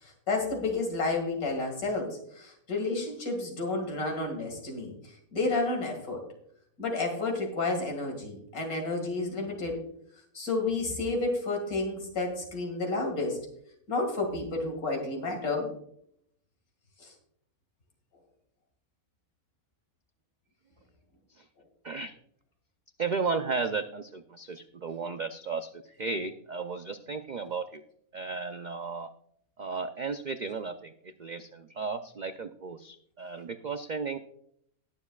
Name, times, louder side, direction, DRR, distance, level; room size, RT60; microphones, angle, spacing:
voice 1, 0.0-6.2 6.8-9.8 10.3-13.4 13.9-15.7 17.0-17.1, left 3 dB, 90° left, 2 dB, 2.6 m, -31 dB
voice 2, 21.8-22.2 23.0-27.8 28.1-29.1 29.6-34.2, right 4 dB, 85° right, 8 dB, 0.4 m, -34 dB
20.0 x 7.3 x 2.3 m, 0.68 s
omnidirectional pair, 1.5 m